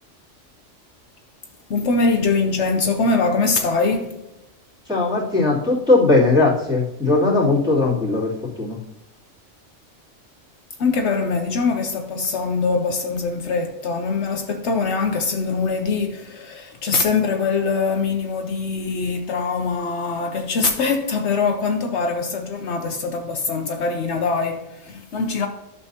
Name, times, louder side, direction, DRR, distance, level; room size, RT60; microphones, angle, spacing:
voice 1, 1.7-4.3 10.8-25.5, left 4 dB, 70° left, 1.0 m, -23 dB
voice 2, 4.9-8.3 8.6-8.8, left 3 dB, 5° right, 2.8 m, -18 dB
11.5 x 6.9 x 2.8 m
omnidirectional pair, 1.2 m